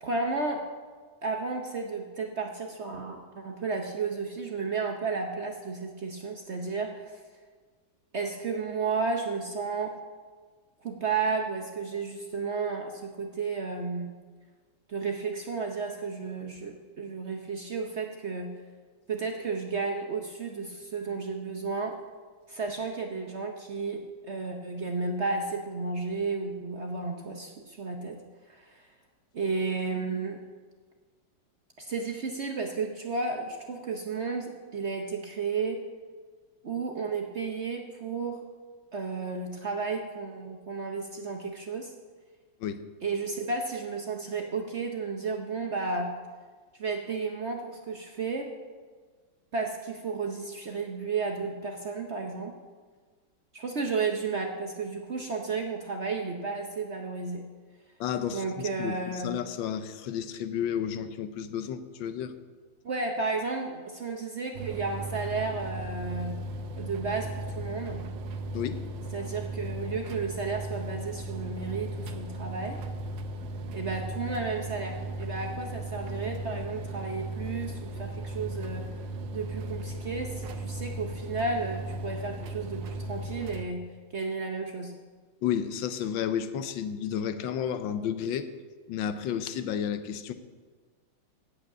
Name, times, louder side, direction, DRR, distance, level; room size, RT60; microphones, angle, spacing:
voice 1, 0.0-0.7 1.2-7.2 8.1-10.0 10.8-14.1 14.9-18.5 19.1-22.0 22.5-28.2 28.5-28.9 29.3-30.4 31.8-35.9 36.6-38.4 38.9-41.9 43.0-46.1 46.7-48.6 49.5-52.6 53.5-57.5 58.3-59.4 62.8-66.4 66.7-68.0 69.1-72.8 73.7-78.9 79.3-83.9 84.1-84.9, right 4 dB, 50° right, 3 dB, 0.8 m, -33 dB
voice 2, 58.0-62.4 68.5-68.8 85.4-88.5 88.9-90.3, left 9 dB, 80° left, 11 dB, 1.4 m, -32 dB
sound 1, 64.5-83.7, right 1 dB, 80° right, 1.5 m, -37 dB
8.7 x 8.1 x 8.4 m, 1.5 s
omnidirectional pair, 2.1 m